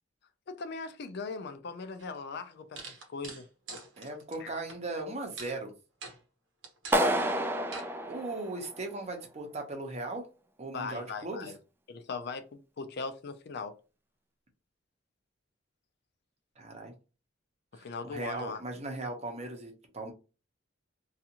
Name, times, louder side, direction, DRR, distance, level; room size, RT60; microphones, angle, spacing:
voice 1, 0.5-2.8 3.1-3.4 4.4-4.5 10.7-11.6 11.9-13.7 17.7-18.6, left 4 dB, 60° left, 0.4 m, -39 dB
sound 1, 2.0-2.1 2.8-4.8 5.4-5.6 6.0-6.2 6.6-7.1 7.7-7.9, right 3 dB, 75° right, 0.8 m, -44 dB
voice 2, 4.0-5.7 8.1-10.3 10.6-11.5 16.6-16.9 17.7-20.1, right 2 dB, 35° right, 0.7 m, -38 dB
Clapping, 6.9-9.0, right 1 dB, 10° right, 0.3 m, -29 dB
2.6 x 2.4 x 2.8 m
head